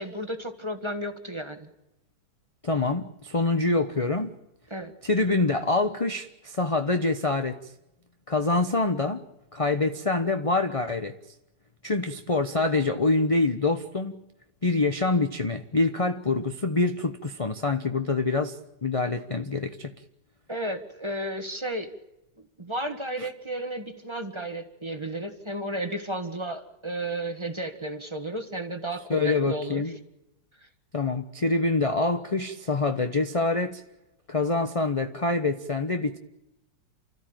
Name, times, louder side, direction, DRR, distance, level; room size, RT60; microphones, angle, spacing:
voice 1, 0.0-1.7 4.7-4.9 20.5-21.9 22.6-29.8, right 1 dB, 15° right, 8 dB, 1.7 m, -33 dB
voice 2, 2.6-4.3 5.0-7.7 8.3-9.2 9.5-11.1 11.8-14.2 14.6-19.9 23.2-23.3 29.1-30.0 30.9-33.8 34.3-36.2, left 3 dB, 25° left, 8 dB, 0.8 m, -25 dB
29.5 x 14.0 x 8.9 m, 0.93 s
omnidirectional pair, 2.0 m